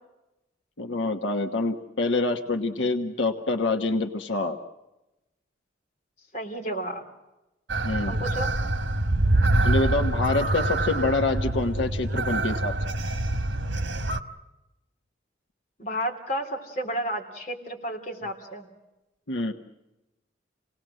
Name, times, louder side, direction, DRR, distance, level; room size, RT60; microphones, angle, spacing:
voice 1, 0.8-4.6 7.8-8.2 9.6-12.9 19.3-19.5, left 2 dB, 85° left, 5 dB, 1.2 m, -26 dB
voice 2, 6.3-7.0 8.1-8.5 15.8-18.7, right 1 dB, 40° left, 0 dB, 3.6 m, -32 dB
sound 1, 7.7-14.2, right 2 dB, 80° right, 1.3 m, -25 dB
28.0 x 19.0 x 7.7 m, 0.98 s
head